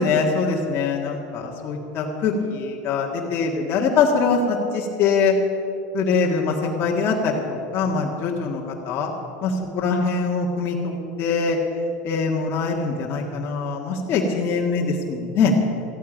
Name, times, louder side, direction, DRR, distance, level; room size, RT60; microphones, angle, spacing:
voice 1, 0.0-5.3 5.9-9.1 9.4-11.6 12.0-15.5, left 4 dB, 40° left, -2 dB, 1.9 m, -23 dB
14.5 x 9.4 x 9.3 m, 2.7 s
supercardioid pair, 135°, 6 cm